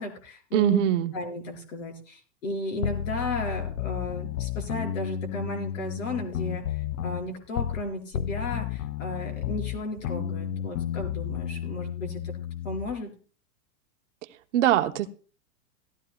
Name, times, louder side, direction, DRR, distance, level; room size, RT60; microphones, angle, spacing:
voice 1, 0.0-0.8 1.1-12.4 12.6-13.1, left 1 dB, 55° left, 2 dB, 4.7 m, -34 dB
voice 2, 0.5-1.1 14.5-15.1, right 12 dB, 55° right, 7 dB, 0.9 m, -22 dB
sound 1, 2.8-7.9 8.1-12.9, left 10 dB, 75° left, 0.7 m, -32 dB
17.0 x 14.5 x 2.2 m, 0.38 s
supercardioid pair, 180°, 45 cm